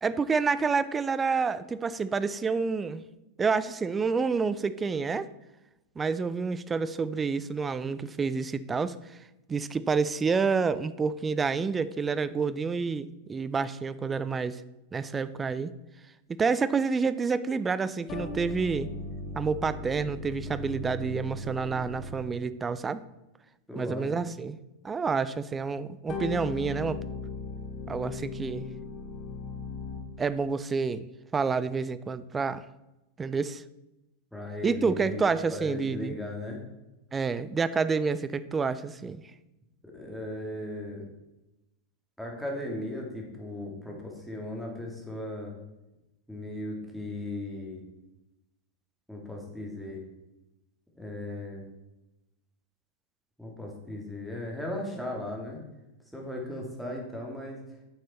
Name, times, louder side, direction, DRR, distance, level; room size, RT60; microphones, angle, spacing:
voice 1, 0.0-3.0 3.4-5.3 6.0-9.2 9.5-14.6 14.9-15.7 16.3-18.9 19.3-23.0 23.7-24.5 24.8-27.0 27.9-28.6 30.2-32.6 33.2-33.6 34.6-36.2 37.1-39.2, right 5 dB, 15° right, 15 dB, 0.4 m, -28 dB
sound 1, 18.1-22.5 26.1-30.3, left 3 dB, 30° left, 1.2 m, -38 dB
voice 2, 23.7-24.3 34.3-35.2 35.5-36.6 39.8-41.0 42.2-45.5 46.3-47.8 49.1-50.0 51.0-51.7 53.4-55.6 56.1-57.6, left 1 dB, ahead, -1 dB, 2.4 m, -37 dB
9.7 x 6.2 x 4.3 m, 0.97 s
figure-of-eight pair, 90°, 0 cm